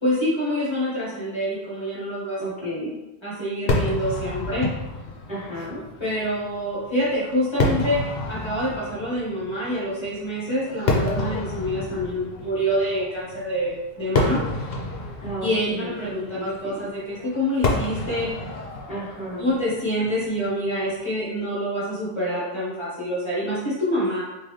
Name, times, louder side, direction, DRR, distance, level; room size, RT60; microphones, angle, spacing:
voice 1, 0.0-2.4 3.2-4.7 6.0-8.0 8.3-14.4 15.4-18.3 19.4-24.2, equal, 25° left, -8 dB, 1.4 m, -26 dB
voice 2, 2.4-3.0 5.3-5.8 15.2-16.9 18.9-19.5, equal, 5° right, -9 dB, 1.2 m, -33 dB
Fireworks, 3.7-21.0, left 2 dB, 70° left, 1.0 m, -30 dB
3.8 x 3.0 x 3.2 m, 1.0 s
omnidirectional pair, 1.1 m